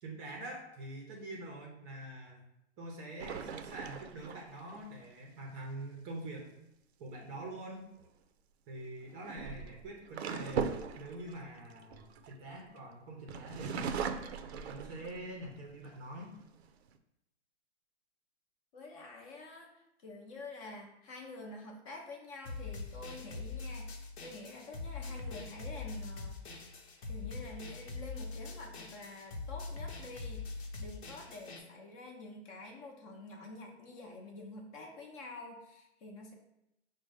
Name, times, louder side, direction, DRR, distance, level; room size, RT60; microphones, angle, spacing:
voice 1, 0.0-2.4 2.8-6.5 7.0-7.9 8.7-14.1 14.5-16.3, right 1 dB, 20° right, 0 dB, 0.5 m, -45 dB
sound 1, 3.2-4.8 7.7-8.0 9.0-12.8 13.3-15.4 15.9-16.0 16.4-17.0, right 6 dB, 65° right, 0.5 m, -39 dB
voice 2, 18.7-26.4 27.1-36.3, left 2 dB, 30° left, 0 dB, 0.6 m, -48 dB
sound 2, 22.5-31.6, left 3 dB, 65° left, 0.9 m, -43 dB
5.1 x 2.1 x 4.8 m, 0.85 s
hypercardioid pair, 145°, 35 cm